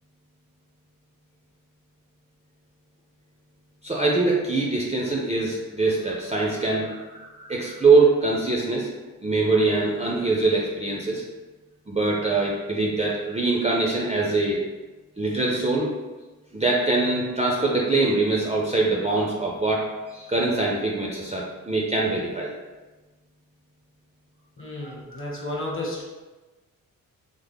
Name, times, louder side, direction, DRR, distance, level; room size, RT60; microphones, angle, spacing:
voice 1, 3.8-8.9 9.2-11.2 11.9-14.6 15.2-15.9 16.5-22.5 24.8-25.4, right 3 dB, 20° right, -3 dB, 0.4 m, -23 dB
voice 2, 24.6-26.0, left 1 dB, 35° left, -3 dB, 0.9 m, -32 dB
3.5 x 2.0 x 3.4 m, 1.2 s
wide cardioid pair, 100°, 34 cm